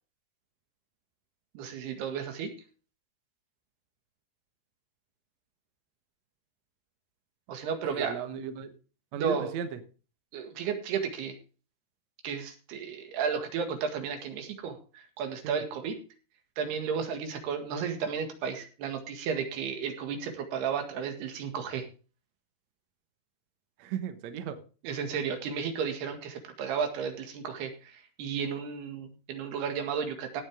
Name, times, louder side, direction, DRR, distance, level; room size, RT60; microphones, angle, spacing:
voice 1, 1.6-2.5 7.5-8.1 9.1-9.5 10.3-11.3 12.2-16.0 16.6-21.8 24.8-30.4, right 6 dB, 80° right, 3.9 m, -33 dB
voice 2, 7.8-8.7 9.1-9.8 15.4-15.6 23.8-24.6, right 7 dB, 65° right, 1.8 m, -35 dB
17.5 x 8.0 x 3.5 m
omnidirectional pair, 4.6 m